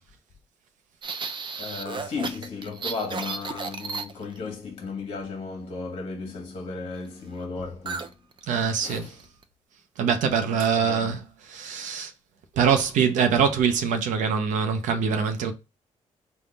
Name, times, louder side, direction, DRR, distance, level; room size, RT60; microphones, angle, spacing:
sound 1, 1.0-4.5 7.9-8.1 8.4-8.6 9.1-9.4, right 5 dB, 40° right, 0.5 m, -34 dB
voice 1, 1.6-8.2 8.8-9.2 10.7-11.2, left 4 dB, 50° left, 1.0 m, -35 dB
voice 2, 8.5-9.1 10.0-11.2 11.5-12.1 12.5-15.5, right 6 dB, 80° right, 0.7 m, -23 dB
3.6 x 2.3 x 3.9 m
cardioid pair, 85°, 13 cm